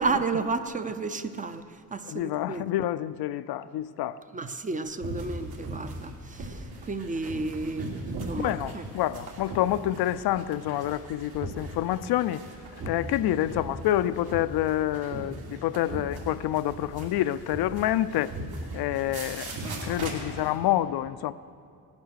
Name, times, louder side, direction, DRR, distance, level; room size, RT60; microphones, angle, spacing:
voice 1, 0.0-2.6 4.3-8.0 8.3-8.9, right 4 dB, 20° right, 0.5 m, -32 dB
voice 2, 2.1-4.2 8.4-12.4 12.9-18.3 18.7-19.5 19.8-21.3, left 13 dB, 80° left, 0.5 m, -27 dB
sound 1, 5.0-20.5, right 2 dB, 70° right, 3.2 m, -38 dB
18.5 x 10.5 x 6.4 m
cardioid pair, 140°, 38 cm